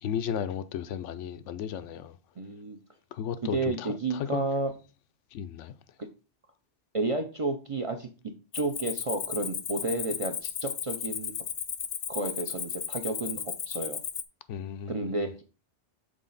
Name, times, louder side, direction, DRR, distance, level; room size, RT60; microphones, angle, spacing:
voice 1, 0.0-2.2 3.1-4.4 5.3-5.7 14.5-15.3, left 8 dB, 80° left, 0.9 m, -34 dB
voice 2, 2.4-2.8 3.5-4.7 6.9-8.1 8.5-11.3 12.1-14.0 14.9-15.4, right 2 dB, 40° right, 0.5 m, -31 dB
Cricket, 8.5-14.2, left 8 dB, 55° left, 0.5 m, -35 dB
6.3 x 4.1 x 3.9 m
omnidirectional pair, 1.2 m